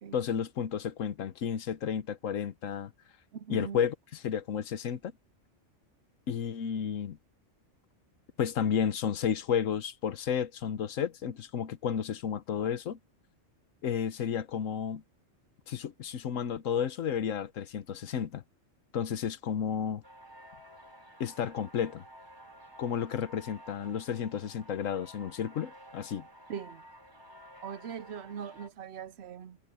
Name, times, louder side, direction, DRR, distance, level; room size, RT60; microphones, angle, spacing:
voice 1, 0.1-2.9 3.5-5.1 6.3-7.2 8.4-13.0 13.8-15.0 15.7-18.4 18.9-20.0 21.2-22.0 22.8-26.3, left 8 dB, 80° left, 1.3 m, -32 dB
voice 2, 3.3-3.8 26.5-26.8 27.6-29.6, right 8 dB, 65° right, 0.8 m, -41 dB
sound 1, 20.0-28.7, equal, 20° right, 3.9 m, -53 dB
omnidirectional pair, 1.3 m